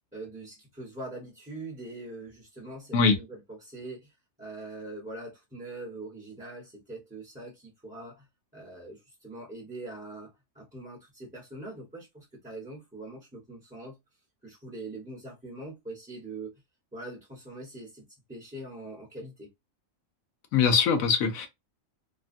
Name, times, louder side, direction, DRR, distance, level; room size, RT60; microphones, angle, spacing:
voice 1, 0.1-8.3 8.5-14.0 14.4-16.5 16.9-19.5, right 2 dB, 5° right, 0.9 m, -43 dB
voice 2, 20.5-21.5, left 5 dB, 80° left, 1.1 m, -22 dB
3.0 x 2.2 x 2.5 m
omnidirectional pair, 1.5 m